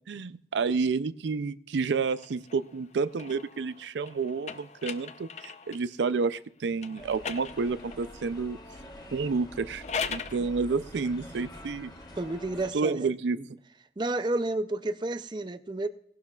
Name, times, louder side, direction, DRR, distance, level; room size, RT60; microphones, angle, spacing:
voice 1, 0.1-8.6 9.1-9.8 10.1-11.9 12.7-13.4, right 4 dB, 85° right, 15 dB, 0.4 m, -30 dB
sound 1, 1.9-5.9 6.8-8.1 9.6-10.4, left 6 dB, 40° left, 0.6 m, -39 dB
sound 2, 7.0-12.7, left 1 dB, 25° left, 1.7 m, -46 dB
voice 2, 12.2-13.1 13.4-13.5 14.0-15.9, right 2 dB, 25° right, 11 dB, 0.4 m, -31 dB
17.5 x 11.5 x 2.3 m, 0.67 s
head